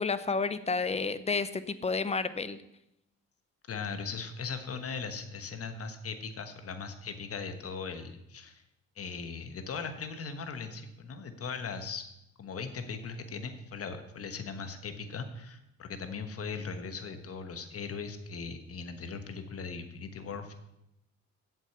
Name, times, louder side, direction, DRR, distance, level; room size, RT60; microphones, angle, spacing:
voice 1, 0.0-2.6, left 4 dB, 20° left, 14 dB, 0.7 m, -30 dB
voice 2, 3.7-8.6 9.0-12.1 12.4-20.6, left 5 dB, 50° left, 8 dB, 1.3 m, -39 dB
8.4 x 7.5 x 6.9 m, 0.85 s
cardioid pair, 90°, 30 cm